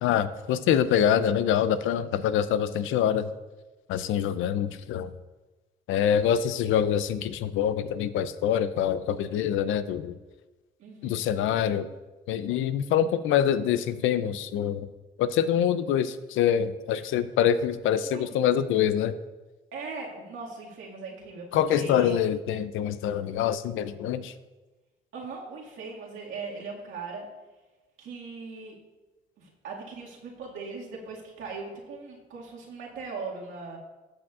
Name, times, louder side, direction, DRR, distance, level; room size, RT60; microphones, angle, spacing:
voice 1, 0.0-3.3 3.9-5.1 5.9-10.2 11.0-11.9 12.3-14.9 15.2-19.1 21.5-24.3, left 9 dB, 85° left, 14 dB, 0.5 m, -25 dB
voice 2, 10.8-11.2 18.0-18.3 19.7-22.2 25.1-27.3 28.0-28.8 29.4-33.8, right 4 dB, 80° right, -3 dB, 2.0 m, -39 dB
13.5 x 6.2 x 2.4 m, 1.2 s
cardioid pair, 90°, 20 cm